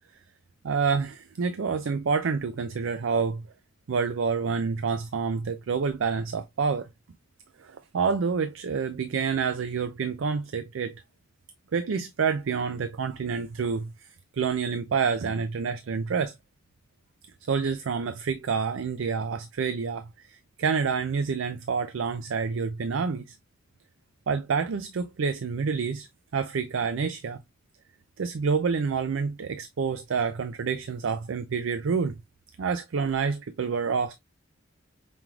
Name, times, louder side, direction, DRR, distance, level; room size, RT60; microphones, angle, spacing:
voice 1, 0.6-3.5 3.9-6.9 7.6-11.0 11.7-13.9 14.3-16.3 17.5-23.4 24.3-26.1 26.3-27.4 28.2-32.1 32.6-34.2, right 5 dB, 70° right, 0.4 m, -28 dB
5.3 x 3.1 x 2.3 m
head